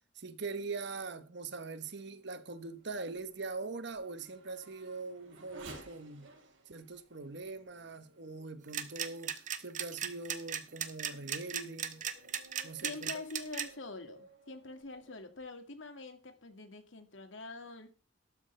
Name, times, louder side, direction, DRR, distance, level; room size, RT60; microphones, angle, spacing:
voice 1, 0.1-6.3 6.7-12.0 12.6-13.1, right 3 dB, 60° right, 1.2 m, -42 dB
Race car auto racing / Accelerating revving vroom, 1.5-9.3 9.9-10.0 10.6-15.4, right 2 dB, 80° right, 4.8 m, -57 dB
sound 1, 8.7-13.6, right 9 dB, 40° right, 1.3 m, -36 dB
voice 2, 12.8-17.9, left 3 dB, 75° left, 2.2 m, -45 dB
13.0 x 13.0 x 3.4 m
head